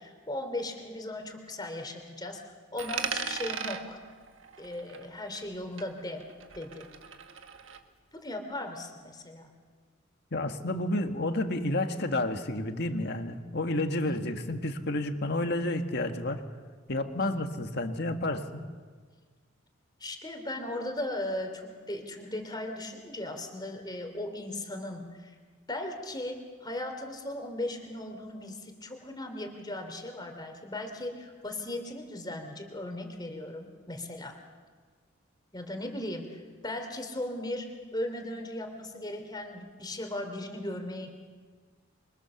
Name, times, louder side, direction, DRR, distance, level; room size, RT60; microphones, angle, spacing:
voice 1, 0.0-2.4 2.7-4.0 4.6-6.2 6.6-6.9 8.1-9.5 14.0-14.2 17.2-17.6 20.0-25.3 25.7-34.4 35.5-41.1, left 1 dB, 20° left, 5 dB, 3.1 m, -37 dB
Coin (dropping), 2.8-5.5 5.8-7.8, right 6 dB, 70° right, 1.6 m, -38 dB
voice 2, 10.3-16.4 16.9-18.6, left 1 dB, 55° left, 6 dB, 1.7 m, -30 dB
27.5 x 23.5 x 7.1 m, 1.5 s
head